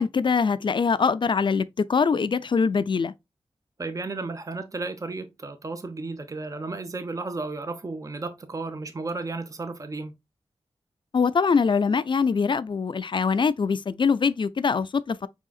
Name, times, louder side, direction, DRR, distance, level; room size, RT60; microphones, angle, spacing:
voice 1, 0.0-3.1 11.1-15.3, left 5 dB, 50° left, 0.3 m, -23 dB
voice 2, 3.8-10.1, right 3 dB, 30° right, 0.6 m, -33 dB
4.8 x 3.7 x 2.3 m
cardioid pair, 40°, 11 cm